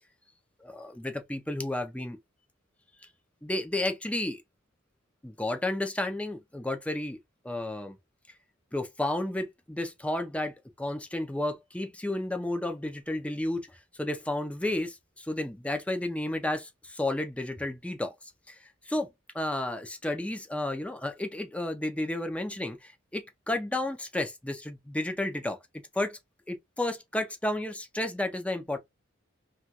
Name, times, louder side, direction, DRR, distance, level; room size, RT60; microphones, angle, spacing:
voice 1, 0.6-2.2 3.0-3.1 3.4-4.4 5.2-7.2 7.4-8.0 8.7-13.7 14.0-18.1 18.5-18.6 18.9-19.1 19.3-25.6 25.9-26.2 26.5-28.8, left 1 dB, 5° left, 0.5 m, -32 dB
3.0 x 2.3 x 2.8 m
head